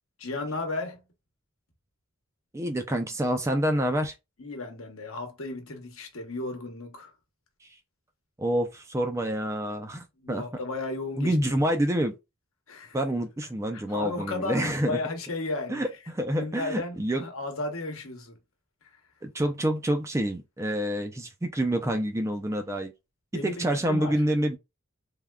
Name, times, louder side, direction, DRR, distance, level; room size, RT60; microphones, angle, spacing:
voice 1, 0.2-1.0 4.4-7.1 10.2-11.7 12.7-13.0 13.7-15.8 16.4-18.4 23.3-24.2, left 2 dB, 70° left, 1.0 m, -34 dB
voice 2, 2.5-4.1 7.6-7.7 8.4-10.4 11.2-12.1 12.9-15.0 15.7-17.2 19.2-22.9 23.4-24.6, right 1 dB, 15° right, 0.3 m, -27 dB
3.4 x 2.2 x 2.2 m
head